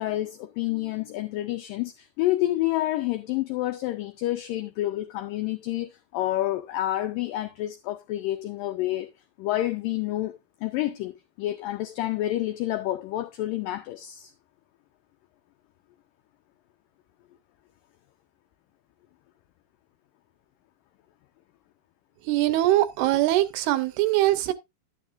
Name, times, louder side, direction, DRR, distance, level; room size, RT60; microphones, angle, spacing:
voice 1, 0.0-9.1 9.4-14.3, left 15 dB, 90° left, 1.9 m, -29 dB
voice 2, 22.2-24.5, right 15 dB, 80° right, 2.6 m, -22 dB
11.0 x 9.4 x 2.5 m
omnidirectional pair, 4.7 m